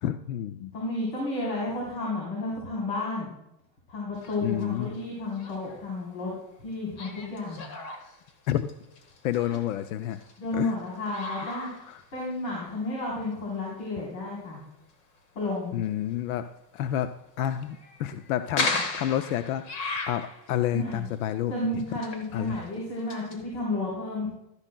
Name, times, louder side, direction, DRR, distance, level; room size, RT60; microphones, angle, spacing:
voice 1, 0.0-0.7 4.4-4.9 8.5-8.7 9.2-10.2 10.5-10.8 11.9-12.0 15.7-16.5 16.7-21.8 22.3-22.6, left 11 dB, 60° left, 11 dB, 0.5 m, -30 dB
voice 2, 0.7-3.3 3.9-6.3 6.6-7.6 9.4-9.6 10.4-11.7 12.1-14.6 15.4-15.8 18.6-18.8 20.7-21.1 21.5-24.3, left 2 dB, 80° left, -5 dB, 3.8 m, -32 dB
sound 1, 4.2-5.0 5.3-5.9 7.0-10.4 10.8-12.5 13.0-13.1 13.7-13.8 16.8-17.0 17.5-20.6 21.1-21.3 21.8-23.4, left 3 dB, 45° left, 1.3 m, -36 dB
13.0 x 9.9 x 2.2 m, 0.84 s
supercardioid pair, 170°, 49 cm